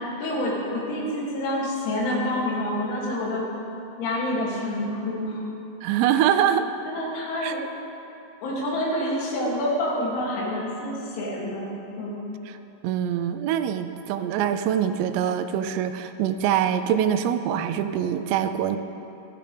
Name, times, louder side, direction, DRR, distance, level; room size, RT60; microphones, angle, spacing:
voice 1, 0.2-3.5 4.0-5.4 6.9-7.6 8.4-12.2, left 1 dB, 85° left, -5 dB, 5.4 m, -27 dB
voice 2, 5.8-6.7 7.4-7.5 12.5-12.6 12.8-18.8, right 9 dB, 85° right, 10 dB, 3.2 m, -24 dB
15.5 x 15.0 x 3.4 m, 2.7 s
omnidirectional pair, 6.0 m